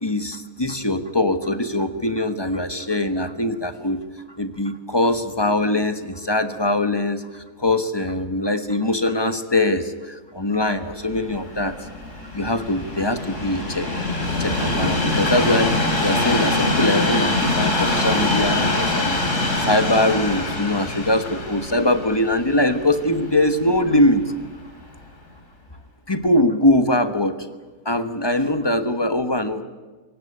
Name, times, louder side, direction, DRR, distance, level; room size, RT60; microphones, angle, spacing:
voice 1, 0.0-4.0 4.4-11.9 12.3-13.9 14.4-19.2 19.6-24.2 26.1-27.4 27.8-29.6, left 1 dB, 20° left, 9 dB, 1.2 m, -22 dB
Train, 11.0-24.2 24.9-25.0, left 2 dB, 55° left, 5.1 m, -24 dB
23.0 x 18.5 x 9.9 m, 1.3 s
omnidirectional pair, 1.6 m